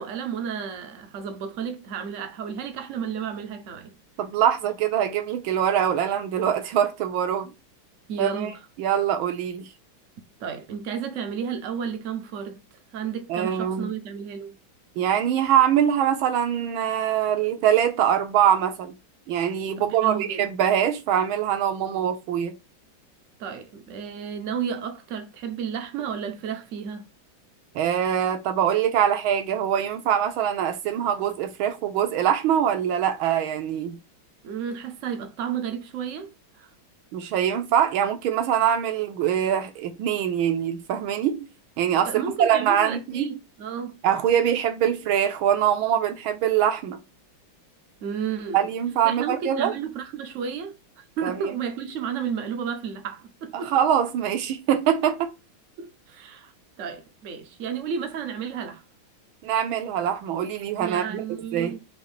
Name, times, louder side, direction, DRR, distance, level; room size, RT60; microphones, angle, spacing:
voice 1, 0.0-3.9 7.4-7.5 8.1-8.6 10.4-12.6 12.9-14.6 19.8-20.5 23.4-27.1 34.4-36.3 36.6-36.7 42.1-44.0 48.0-48.7 49.0-53.7 55.8-56.5 56.8-58.8 60.8-61.8, right 7 dB, 65° right, 0.7 m, -32 dB
voice 2, 4.2-7.5 8.2-9.7 13.3-13.9 15.0-18.9 19.3-22.5 27.7-34.0 37.1-41.5 41.8-43.4 44.0-47.0 48.5-49.7 51.2-51.5 53.5-55.3 59.4-61.2 61.5-61.8, right 9 dB, 85° right, 1.6 m, -23 dB
5.2 x 2.5 x 3.2 m
omnidirectional pair, 2.2 m